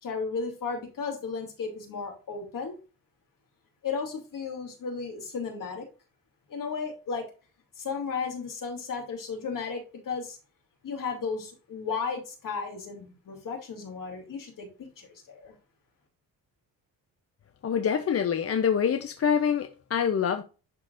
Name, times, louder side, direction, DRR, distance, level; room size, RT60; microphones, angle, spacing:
voice 1, 0.0-2.8 3.8-5.9 6.5-7.3 7.8-10.4 10.8-15.5, left 5 dB, 60° left, 2.6 m, -34 dB
voice 2, 17.6-20.4, left 7 dB, 40° left, 0.6 m, -25 dB
11.0 x 3.9 x 2.5 m
cardioid pair, 130°, 36 cm